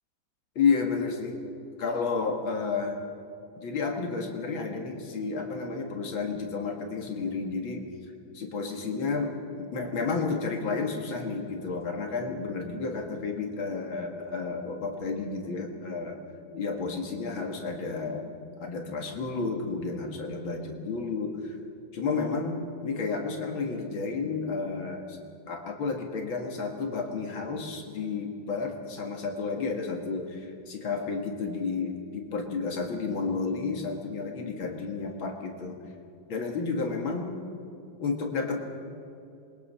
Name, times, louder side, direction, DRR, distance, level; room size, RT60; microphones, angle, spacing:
voice 1, 0.6-1.4 1.8-3.0 3.6-7.9 8.3-16.2 16.5-18.2 18.6-21.4 21.9-25.2 25.5-35.8 36.3-37.4 38.0-38.6, left 4 dB, 85° left, 2 dB, 2.7 m, -31 dB
27.0 x 21.5 x 5.7 m, 2.6 s
omnidirectional pair, 2.1 m